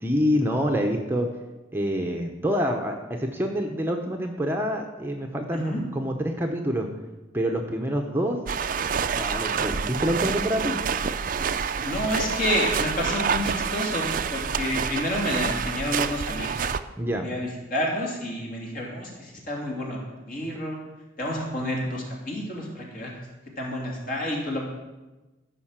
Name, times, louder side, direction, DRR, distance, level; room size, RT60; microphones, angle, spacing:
voice 1, 0.0-1.3 1.7-6.9 7.3-8.4 9.1-10.8 17.0-17.3, equal, 10° right, 2 dB, 0.8 m, -26 dB
sound 1, 8.5-16.8, right 6 dB, 45° right, 0.4 m, -28 dB
voice 2, 11.8-16.5 17.2-20.8 21.2-23.1 23.6-24.7, left 1 dB, 45° left, -1 dB, 3.0 m, -29 dB
14.5 x 5.7 x 7.4 m, 1.1 s
head